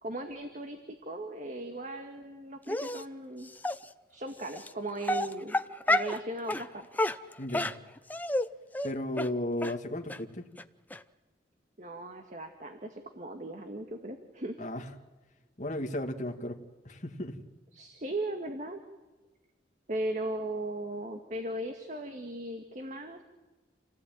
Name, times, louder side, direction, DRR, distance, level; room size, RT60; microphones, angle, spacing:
voice 1, 0.0-3.5 4.1-5.6 5.9-6.9 11.8-14.6 17.7-18.8 19.9-23.2, right 1 dB, 45° right, 5 dB, 2.0 m, -37 dB
Dog, 2.7-3.0 3.6-3.8 4.6-4.7 5.0-6.2 6.5-6.6 7.0-8.5 8.7-8.9 9.2-9.3 9.6-9.7 10.1-10.2 10.6-10.7 10.9-11.0, left 1 dB, 10° left, 0.7 m, -29 dB
voice 2, 7.4-7.7 8.8-10.5 14.6-14.8 15.6-16.6 16.8-17.4, left 1 dB, 45° left, 2 dB, 2.4 m, -34 dB
28.5 x 17.5 x 9.2 m, 1.2 s
head